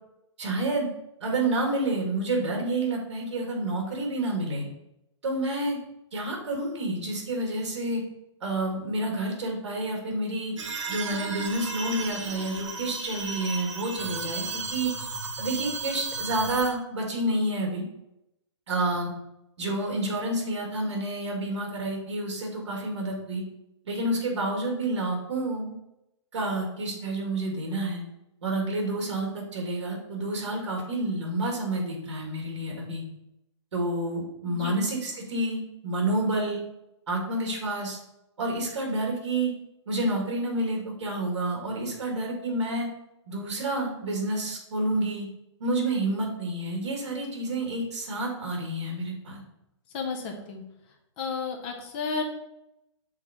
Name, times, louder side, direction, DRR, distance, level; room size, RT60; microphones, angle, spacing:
voice 1, 0.4-0.9 1.2-4.7 5.2-5.8 6.1-8.0 8.4-10.5 10.9-14.9 15.4-17.8 18.7-19.1 19.6-23.4 23.8-25.7 26.3-28.0 28.4-33.0 33.7-36.6 37.1-38.0 38.4-39.5 39.9-42.9 43.3-45.3 45.6-49.4, right 2 dB, 65° right, 1 dB, 2.0 m, -29 dB
sound 1, 10.6-16.7, right 4 dB, 85° right, 1.1 m, -34 dB
voice 2, 49.9-50.6 51.2-52.2, left 5 dB, 20° left, 2 dB, 0.6 m, -32 dB
6.3 x 3.7 x 4.2 m, 0.86 s
hypercardioid pair, 175°, 16 cm